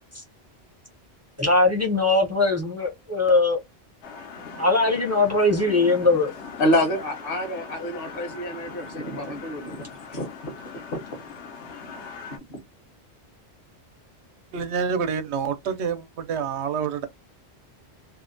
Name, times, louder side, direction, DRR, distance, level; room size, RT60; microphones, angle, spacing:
voice 1, 1.4-3.6 4.6-6.3, left 2 dB, 20° right, 0.4 m, -20 dB
sound 1, 4.0-12.4, left 5 dB, 85° left, 1.0 m, -40 dB
voice 2, 6.6-9.8 10.1-10.5 10.9-11.0 12.3-12.6, left 1 dB, 60° left, 0.9 m, -27 dB
voice 3, 14.5-17.1, right 6 dB, 80° right, 0.9 m, -27 dB
2.6 x 2.1 x 2.5 m
omnidirectional pair, 1.1 m